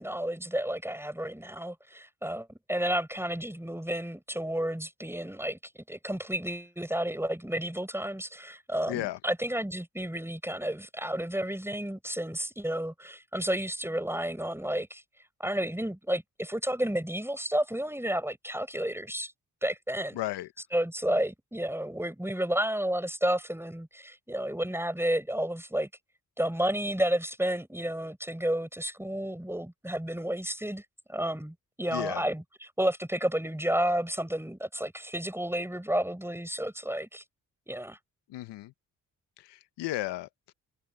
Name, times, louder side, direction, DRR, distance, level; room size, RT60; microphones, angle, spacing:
voice 1, 0.0-15.0 15.4-19.3 19.6-20.2 20.7-25.9 26.4-30.8 31.1-32.4 32.8-37.2 37.7-38.0, right 1 dB, 5° right, 5.9 m, -31 dB
voice 2, 8.9-9.2 20.1-20.5 31.9-32.2 38.3-38.7 39.4-40.5, left 16 dB, 80° left, 1.2 m, -34 dB
hypercardioid pair, 40°, 41 cm